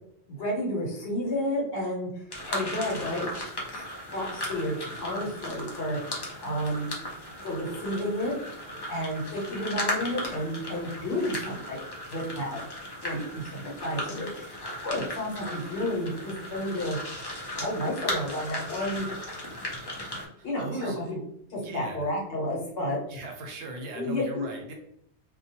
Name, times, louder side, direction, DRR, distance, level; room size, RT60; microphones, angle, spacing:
voice 1, 0.3-2.2 2.5-3.3 3.7-3.8 4.1-6.9 7.4-8.4 8.9-11.8 12.1-12.6 13.0-17.0 17.6-19.1 20.4-21.2 21.5-23.0 24.0-24.5, left 1 dB, 60° left, -3 dB, 1.0 m, -31 dB
sound 1, 2.3-20.3, left 1 dB, 35° left, 0.4 m, -36 dB
voice 2, 20.4-21.1 21.6-22.1 23.1-24.7, right 1 dB, 80° right, 2 dB, 0.9 m, -39 dB
2.3 x 2.1 x 2.8 m, 0.72 s
omnidirectional pair, 1.2 m